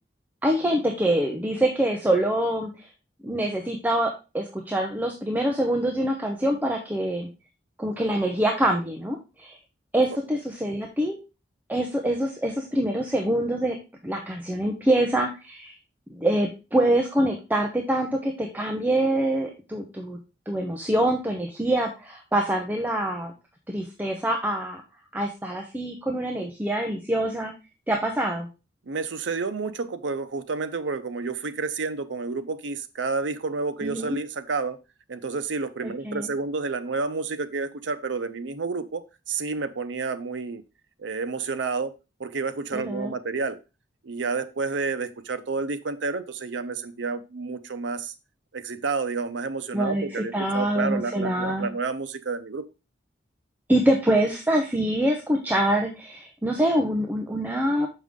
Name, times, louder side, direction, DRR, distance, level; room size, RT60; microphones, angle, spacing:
voice 1, 0.4-2.9 3.2-7.3 7.8-9.6 9.9-11.2 11.7-13.8 14.0-15.7 16.1-20.2 20.5-23.3 23.7-24.8 25.1-27.5 27.9-28.5 33.8-34.2 35.8-36.3 42.7-43.1 49.7-50.0 50.3-51.7 53.7-57.9, right 1 dB, 10° right, 1 dB, 0.7 m, -25 dB
voice 2, 28.9-34.8 35.1-40.6 41.0-43.6 44.0-48.1 48.5-52.7, right 4 dB, 90° right, 10 dB, 0.7 m, -30 dB
6.4 x 5.4 x 3.6 m, 0.30 s
head